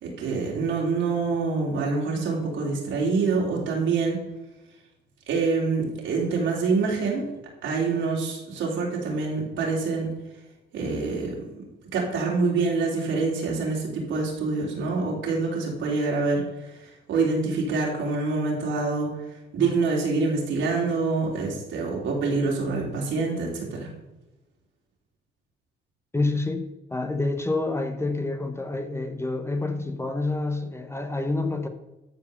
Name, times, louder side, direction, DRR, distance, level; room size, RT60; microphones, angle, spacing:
voice 1, 0.0-4.2 5.3-7.2 7.6-10.1 10.7-11.6 11.9-16.4 16.8-19.1 19.5-23.9, right 4 dB, 85° right, -2 dB, 3.7 m, -26 dB
voice 2, 26.1-31.7, left 2 dB, 15° left, 6 dB, 1.0 m, -28 dB
13.0 x 4.8 x 6.8 m, 1.0 s
cardioid pair, 110°, 20 cm